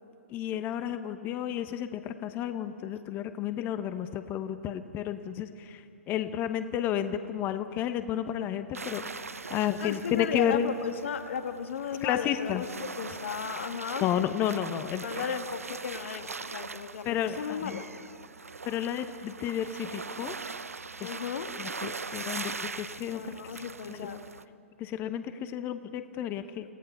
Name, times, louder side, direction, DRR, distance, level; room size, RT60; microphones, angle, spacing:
voice 1, 0.3-10.7 12.0-12.6 14.0-15.1 17.0-17.8 18.6-20.4 21.0-21.1 21.6-23.6 23.9-24.1 24.8-26.6, left 10 dB, 25° left, 10 dB, 0.9 m, -32 dB
sound 1, 8.7-24.4, right 4 dB, 85° right, 0.7 m, -41 dB
voice 2, 9.8-12.7 13.0-14.1 15.0-17.0 17.4-17.9 21.0-21.5 23.1-24.3, left 7 dB, 60° left, 7 dB, 1.5 m, -35 dB
29.5 x 17.5 x 5.7 m, 2.4 s
figure-of-eight pair, 120°, 8 cm